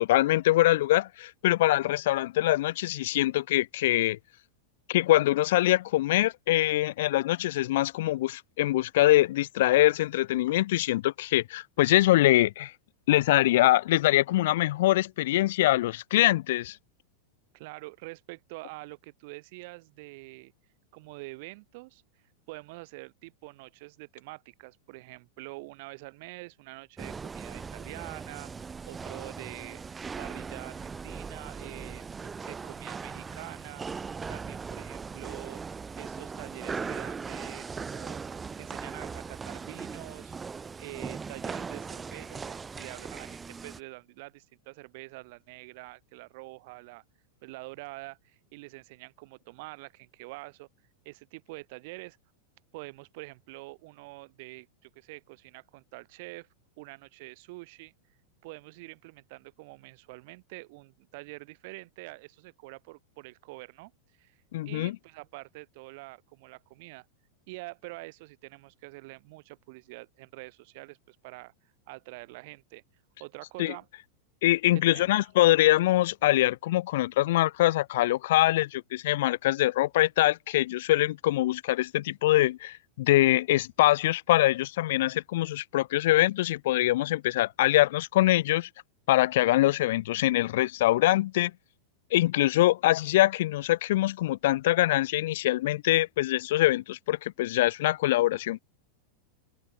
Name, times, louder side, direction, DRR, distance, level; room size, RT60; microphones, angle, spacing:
voice 1, 0.0-4.2 4.9-12.7 13.1-16.8 64.5-64.9 73.6-73.7 74.4-88.7 89.1-91.5 92.1-98.6, left 16 dB, 55° left, 0.3 m, -24 dB
voice 2, 17.5-20.5 20.9-22.0 22.5-28.5 28.9-29.8 30.2-33.9 34.3-35.6 35.9-38.3 38.6-40.3 40.8-47.0 47.4-50.7 51.0-52.2 52.7-56.5 56.8-57.9 58.4-63.9 64.2-64.4 64.7-67.1 67.5-71.5 71.9-72.8 73.2-73.9 74.9-75.3, right 24 dB, 50° right, 2.2 m, -45 dB
sound 1, 27.0-43.8, right 5 dB, 15° right, 0.5 m, -39 dB
open air
figure-of-eight pair, 90°, 0 cm